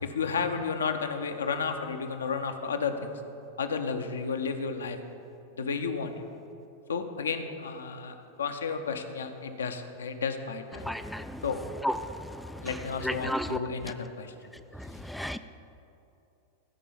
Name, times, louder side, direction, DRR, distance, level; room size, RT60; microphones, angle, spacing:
voice 1, 0.0-3.2 3.6-5.0 5.6-6.1 6.9-10.9 11.4-11.6 12.6-14.3, left 5 dB, 70° left, 6 dB, 0.8 m, -32 dB
voice 2, 10.9-11.4 11.8-11.9 13.0-13.6 15.1-15.4, equal, ahead, 9 dB, 0.3 m, -31 dB
15.0 x 5.4 x 7.1 m, 2.8 s
figure-of-eight pair, 90°, 0 cm